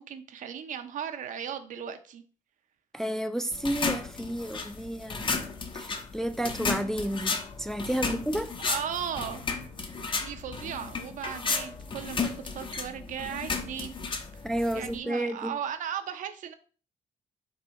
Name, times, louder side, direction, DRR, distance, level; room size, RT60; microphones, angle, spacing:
voice 1, 0.0-2.2 8.0-8.2 8.7-9.4 10.2-14.0 14.3-14.4 14.7-16.5, right 8 dB, 65° right, 0.6 m, -36 dB
voice 2, 2.9-5.4 5.7-8.5 14.4-15.6, right 1 dB, 5° left, 0.3 m, -31 dB
sound 1, 3.5-15.0, left 4 dB, 35° left, 0.7 m, -34 dB
4.4 x 2.7 x 4.2 m
cardioid pair, 90°, 14 cm